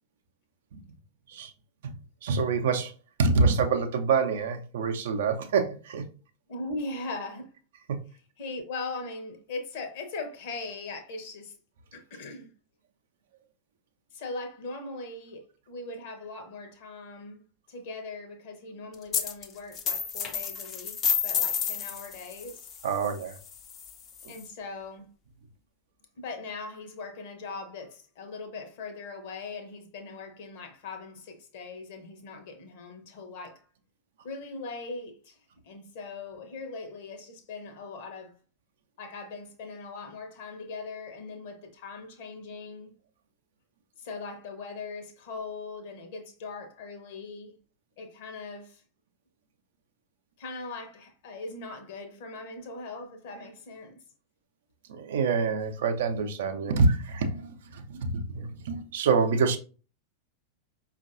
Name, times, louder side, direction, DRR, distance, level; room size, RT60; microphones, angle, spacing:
voice 1, 2.2-2.9 3.2-6.1 7.9-8.0 22.8-23.3 54.9-59.6, right 4 dB, 60° right, 0.5 m, -26 dB
voice 2, 6.5-7.6 8.4-11.5 11.9-12.5 14.1-17.4 17.7-21.0 21.2-22.7 24.3-25.1 26.2-33.7 34.2-35.4 35.6-38.3 39.0-42.9 44.0-47.5 48.0-48.8 50.4-54.0, left 3 dB, 50° left, 0.9 m, -40 dB
sound 1, 19.1-19.5 19.7-24.4, left 7 dB, 30° left, 0.5 m, -31 dB
5.2 x 2.5 x 2.6 m
figure-of-eight pair, 90°, 0 cm